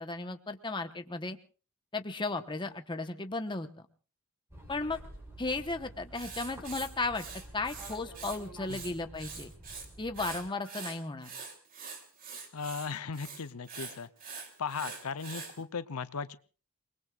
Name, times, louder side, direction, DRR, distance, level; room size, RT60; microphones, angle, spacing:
voice 1, 0.0-1.4 1.9-3.7 4.7-5.0 5.4-7.3 7.5-9.5 10.0-11.3, left 3 dB, 20° left, 7 dB, 1.1 m, -35 dB
sound 1, 4.5-10.4, right 1 dB, 10° right, 5.7 m, -50 dB
Writing, 6.1-8.4 8.6-9.9 10.1-15.5, right 5 dB, 40° right, 3.1 m, -44 dB
voice 2, 12.5-14.1 14.6-16.4, left 5 dB, 85° left, 13 dB, 0.8 m, -37 dB
28.5 x 20.5 x 2.5 m, 0.37 s
head